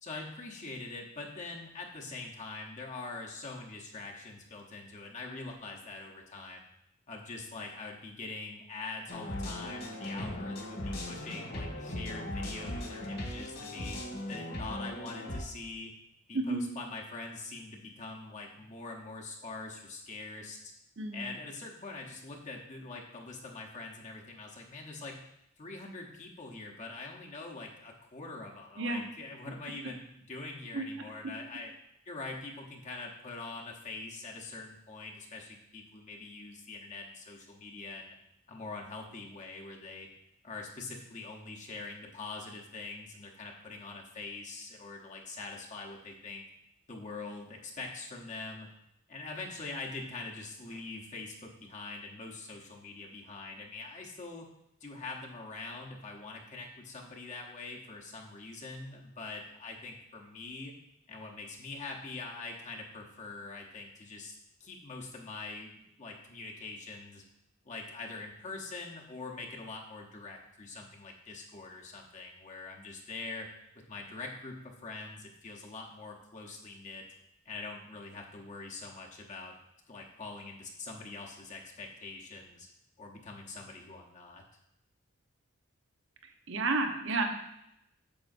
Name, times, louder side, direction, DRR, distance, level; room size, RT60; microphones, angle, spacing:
voice 1, 0.0-6.7 7.1-14.0 14.3-15.9 16.3-20.6 21.1-25.2 25.6-31.7 32.1-38.1 38.5-40.1 40.4-46.4 46.9-48.7 49.1-54.5 54.8-60.7 61.1-64.3 64.6-67.2 67.6-73.5 73.9-77.0 77.4-79.5 79.9-82.7 83.0-84.4, left 3 dB, 35° left, -1 dB, 0.9 m, -44 dB
sound 1, 9.1-15.4, left 1 dB, 55° left, 1.5 m, -38 dB
voice 2, 21.0-21.3 28.8-29.0 30.7-30.8 86.5-87.4, right 3 dB, 65° right, 4 dB, 0.9 m, -31 dB
8.8 x 6.9 x 2.6 m, 0.80 s
head